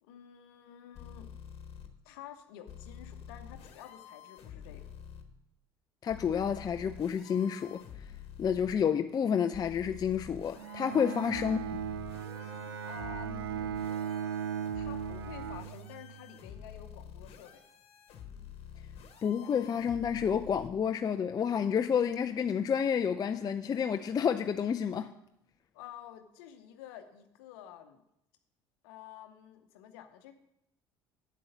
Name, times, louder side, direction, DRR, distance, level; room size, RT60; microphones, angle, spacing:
voice 1, 0.0-1.3 2.0-4.9 11.0-11.2 12.8-13.7 14.7-17.6 25.7-28.0 28.8-30.3, left 11 dB, 75° left, 0.8 m, -50 dB
sound 1, 0.9-1.9 2.7-5.2 6.1-8.7 9.5-20.7, left 8 dB, 55° left, 1.3 m, -48 dB
voice 2, 6.0-7.8 8.4-11.6 19.2-25.1, left 7 dB, 30° left, 0.4 m, -29 dB
Bowed string instrument, 10.6-16.4, right 8 dB, 90° right, 0.4 m, -37 dB
8.5 x 7.7 x 5.1 m
hypercardioid pair, 65°, 13 cm